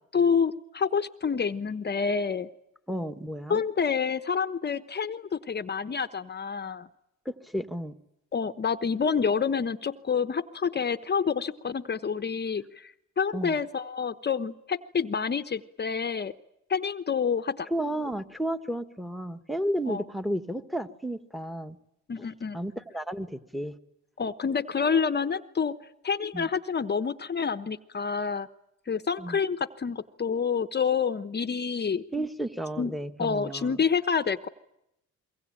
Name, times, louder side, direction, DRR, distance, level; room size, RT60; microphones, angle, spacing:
voice 1, 0.1-2.5 3.5-6.9 8.3-16.3 16.7-17.7 19.9-20.0 22.1-22.6 24.2-25.8 26.0-28.5 28.9-32.0 32.8-32.9 33.2-34.5, left 6 dB, 35° left, 11 dB, 1.0 m, -28 dB
voice 2, 2.9-3.6 7.2-7.9 13.3-13.6 17.7-21.8 22.2-22.3 22.5-23.7 26.3-26.5 29.2-29.4 32.1-33.8, right 1 dB, ahead, 10 dB, 1.6 m, -32 dB
25.0 x 23.0 x 9.0 m, 0.81 s
cardioid pair, 90°, 30 cm